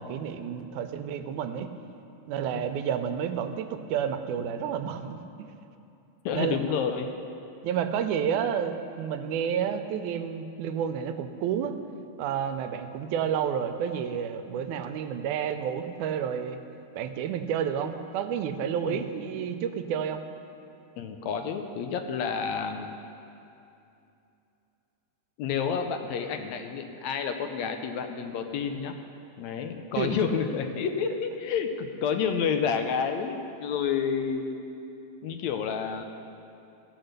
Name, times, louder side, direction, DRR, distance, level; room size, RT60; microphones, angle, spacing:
voice 1, 0.0-1.7 2.3-5.5 6.3-6.6 7.6-11.8 12.2-16.6 17.0-20.2 30.0-30.2, right 8 dB, 90° right, 8 dB, 2.1 m, -30 dB
voice 2, 6.3-7.1 18.8-19.0 21.0-23.0 25.4-28.9 29.4-34.6 35.2-36.0, left 6 dB, 75° left, 6 dB, 1.8 m, -29 dB
15.5 x 6.1 x 6.6 m, 2.7 s
omnidirectional pair, 3.4 m